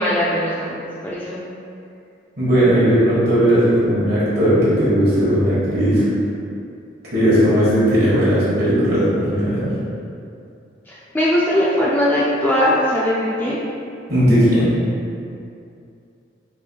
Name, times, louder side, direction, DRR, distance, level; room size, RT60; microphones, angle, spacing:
voice 1, 0.0-1.4 10.9-13.6, left 1 dB, 10° left, -8 dB, 0.3 m, -20 dB
voice 2, 2.4-6.1 7.1-9.7 14.1-14.8, equal, 55° right, -10 dB, 1.3 m, -16 dB
4.1 x 3.0 x 2.2 m, 2.5 s
head